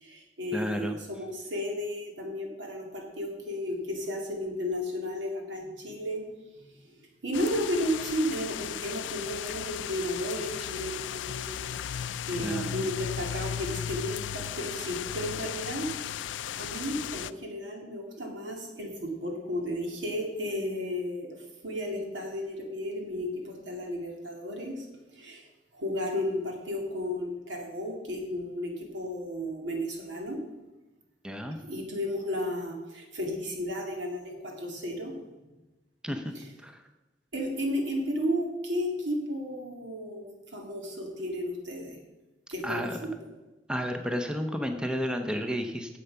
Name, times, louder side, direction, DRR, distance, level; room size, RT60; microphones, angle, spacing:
voice 1, 0.0-6.2 6.6-6.7 7.2-15.9 16.2-16.3 16.5-21.4 21.6-24.9 25.2-25.4 25.7-30.4 31.7-35.1 36.3-36.5 37.3-40.3 40.5-42.0 42.5-43.1, left 1 dB, 80° right, 1 dB, 2.4 m, -33 dB
voice 2, 0.5-1.0 12.4-12.8 31.2-31.6 36.0-36.3 36.6-36.7 42.6-43.0 43.7-46.0, equal, 5° right, 5 dB, 0.7 m, -32 dB
sound 1, 7.3-17.3, left 9 dB, 80° left, 0.4 m, -36 dB
10.0 x 7.7 x 5.7 m, 1.1 s
head